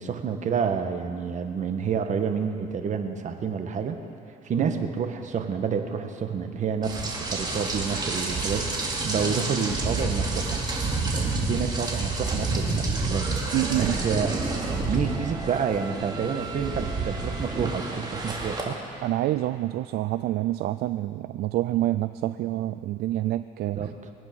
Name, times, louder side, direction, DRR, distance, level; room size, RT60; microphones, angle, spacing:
voice 1, 0.0-4.0 4.4-10.6 10.9-18.8 23.7-24.0, right 6 dB, 45° right, 6 dB, 1.4 m, -29 dB
Rain, 6.8-18.6, right 3 dB, 25° right, 2.5 m, -29 dB
voice 2, 13.5-13.9 19.0-23.8, right 15 dB, 70° right, 12 dB, 0.4 m, -27 dB
22.5 x 9.4 x 6.1 m, 2.7 s
cardioid pair, 110°, 17 cm